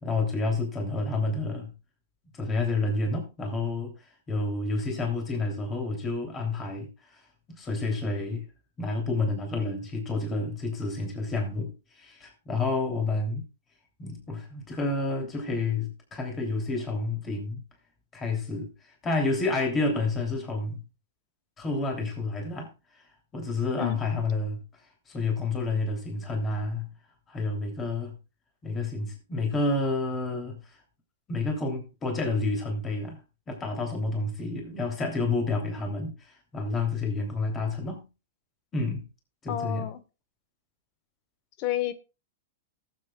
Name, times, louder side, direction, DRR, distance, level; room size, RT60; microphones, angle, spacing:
voice 1, 0.0-1.7 2.3-7.2 7.5-8.4 8.8-13.4 14.0-17.6 18.1-20.8 21.6-23.0 23.3-24.6 25.1-26.9 27.3-28.1 28.6-30.8 31.3-33.2 33.5-38.0 38.7-39.0 39.4-39.9, left 3 dB, 20° left, 3.1 m, -29 dB
voice 2, 39.5-40.0 41.6-41.9, left 11 dB, 45° left, 1.3 m, -30 dB
18.5 x 7.8 x 2.3 m
hypercardioid pair, 135°, 0 cm